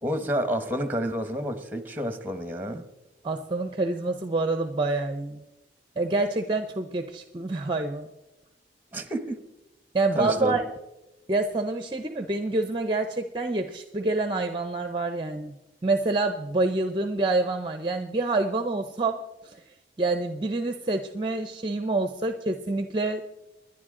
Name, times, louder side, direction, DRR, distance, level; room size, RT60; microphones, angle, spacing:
voice 1, 0.0-2.9 8.9-9.4 10.1-10.6, equal, 10° right, 9 dB, 1.2 m, -29 dB
voice 2, 3.2-5.4 6.0-8.1 9.9-10.6 11.3-15.5 15.8-19.6 20.0-23.2, right 2 dB, 25° right, 8 dB, 0.6 m, -27 dB
26.0 x 10.5 x 3.8 m, 1.0 s
head